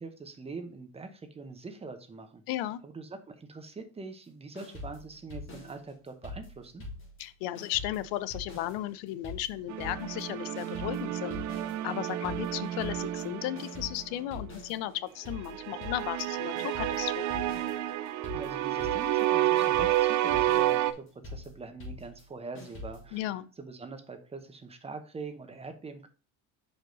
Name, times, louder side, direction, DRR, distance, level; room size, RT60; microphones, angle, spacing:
voice 1, 0.0-2.4 2.8-6.8 18.3-26.1, right 4 dB, 15° right, 0.8 m, -43 dB
voice 2, 2.5-2.8 7.2-11.4 11.8-17.5 23.1-23.5, left 14 dB, 90° left, 0.7 m, -35 dB
sound 1, 4.5-7.3 7.5-23.2, left 2 dB, 30° left, 3.2 m, -44 dB
sound 2, 9.7-14.0 15.5-20.9, right 13 dB, 50° right, 0.6 m, -30 dB
6.1 x 5.2 x 3.8 m
cardioid pair, 155°, 39 cm